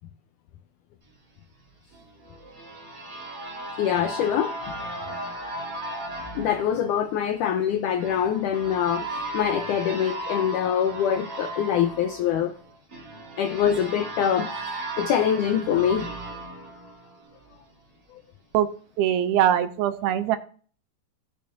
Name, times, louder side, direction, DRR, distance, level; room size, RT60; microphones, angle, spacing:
sound 1, 1.9-17.6, right 1 dB, 30° right, 3.0 m, -36 dB
voice 1, 3.8-4.5 6.4-12.5 13.4-16.1 18.1-18.2, left 9 dB, 90° left, 1.8 m, -24 dB
voice 2, 19.0-20.4, right 11 dB, 85° right, 2.7 m, -22 dB
17.0 x 6.9 x 2.5 m
omnidirectional pair, 4.3 m